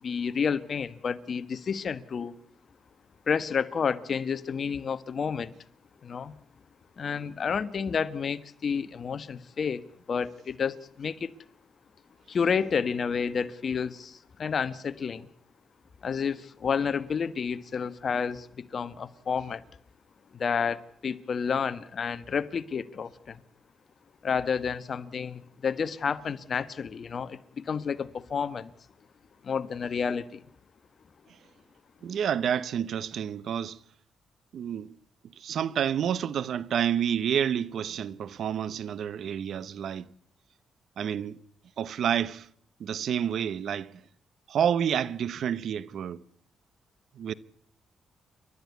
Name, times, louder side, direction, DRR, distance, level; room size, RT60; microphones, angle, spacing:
voice 1, 0.0-2.3 3.3-5.5 6.0-6.3 7.0-11.3 12.3-15.3 16.0-19.6 20.3-23.4 24.2-28.7 29.4-30.4, left 6 dB, 55° left, 1.2 m, -30 dB
voice 2, 32.0-33.8 34.5-34.9 35.4-40.1 41.0-41.4 41.8-42.5 42.8-44.0 44.5-46.2 47.2-47.3, right 9 dB, 70° right, 0.9 m, -29 dB
29.0 x 12.5 x 8.2 m
cardioid pair, 75°, 0 cm